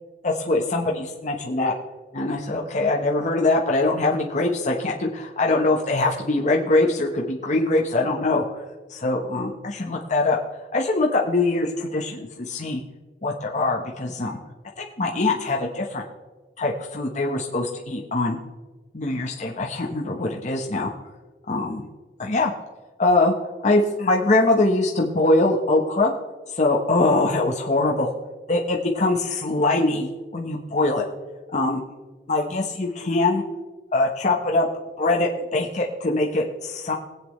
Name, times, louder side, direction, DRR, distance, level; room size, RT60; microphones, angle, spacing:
voice 1, 0.2-1.7 2.1-8.6 8.9-10.4 10.7-12.8 13.2-14.4 14.8-16.0 16.6-18.4 18.9-20.9 21.5-21.9 22.2-22.5 23.0-23.3 23.6-26.1 26.5-28.1 28.5-30.1 30.3-31.1 31.5-31.8 32.3-33.4 33.9-34.7 35.0-36.9, left 2 dB, 45° left, -1 dB, 1.1 m, -22 dB
21.5 x 8.6 x 3.2 m, 1.3 s
head